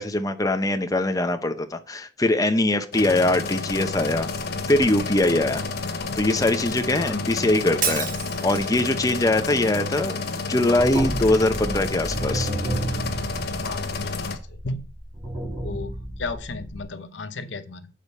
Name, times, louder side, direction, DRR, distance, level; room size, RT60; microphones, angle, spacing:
voice 1, 0.0-4.3 4.7-5.6 6.1-8.1 8.4-10.2 10.5-12.5, left 1 dB, 20° left, 7 dB, 0.7 m, -22 dB
sound 1, 2.9-14.4, left 4 dB, 60° left, 1.1 m, -30 dB
sound 2, 3.9-10.1 10.4-16.8, right 1 dB, 20° right, 3.6 m, -33 dB
Shatter, 7.8-8.8, right 7 dB, 45° right, 1.5 m, -28 dB
voice 2, 13.6-14.2 14.5-14.8 15.6-17.9, left 3 dB, 80° left, 11 dB, 0.8 m, -34 dB
8.1 x 5.1 x 5.4 m, 0.37 s
head